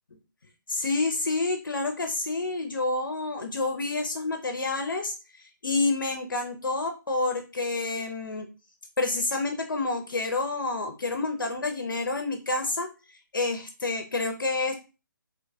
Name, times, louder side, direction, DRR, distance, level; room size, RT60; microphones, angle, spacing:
voice 1, 0.7-8.5 9.0-14.7, left 3 dB, 75° left, 6 dB, 0.5 m, -29 dB
2.7 x 2.2 x 2.6 m, 0.31 s
figure-of-eight pair, 140°, 11 cm